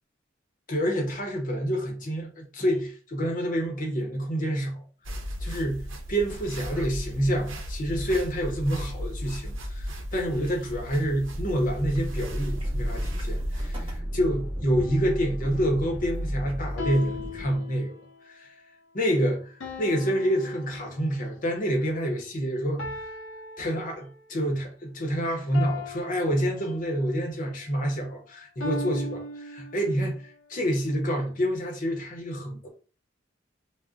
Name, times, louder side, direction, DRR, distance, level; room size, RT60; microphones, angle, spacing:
voice 1, 0.7-4.8 5.4-5.8 6.1-17.9 18.2-18.5 18.9-19.5 19.8-22.9 23.6-29.2 29.5-32.7, equal, 45° left, 0.7 m, -28 dB
sound 1, 5.0-14.0, equal, 85° right, 0.6 m, -35 dB
sound 2, 11.3-17.6, equal, 30° right, 0.9 m, -33 dB
sound 3, 14.8-15.2 16.8-18.3 19.6-21.4 22.8-24.4 25.5-27.2 28.6-30.2, left 3 dB, 85° left, 0.6 m, -39 dB
2.4 x 2.0 x 3.7 m
head